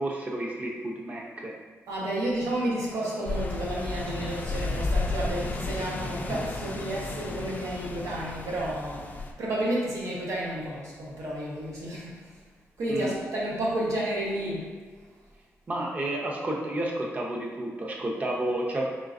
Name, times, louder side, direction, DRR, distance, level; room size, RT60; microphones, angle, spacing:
voice 1, 0.0-1.5 12.9-13.1 15.7-18.8, right 1 dB, 30° right, -1 dB, 0.6 m, -31 dB
voice 2, 1.9-9.1 9.4-12.3 12.8-14.8, right 1 dB, 80° right, -5 dB, 1.1 m, -31 dB
sound 1, 3.3-9.3, left 3 dB, 30° left, 0.3 m, -33 dB
3.9 x 3.7 x 2.5 m, 1.5 s
wide cardioid pair, 145°, 5 cm